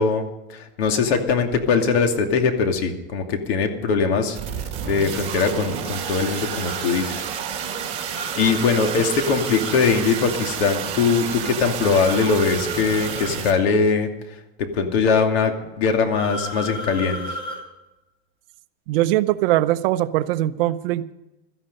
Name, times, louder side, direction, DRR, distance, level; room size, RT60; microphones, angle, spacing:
voice 1, 0.0-4.4 4.9-7.2 8.4-14.1 14.6-17.2, left 5 dB, 75° left, 5 dB, 2.7 m, -21 dB
sound 1, 4.3-13.5, right 7 dB, 20° right, 2.7 m, -30 dB
sound 2, 6.6-6.8 8.1-9.8 12.0-13.4 16.1-17.6, right 1 dB, 15° left, 4.3 m, -33 dB
voice 2, 18.9-21.1, right 15 dB, 60° right, 12 dB, 0.8 m, -21 dB
16.5 x 13.0 x 5.5 m, 0.97 s
supercardioid pair, 170°, 32 cm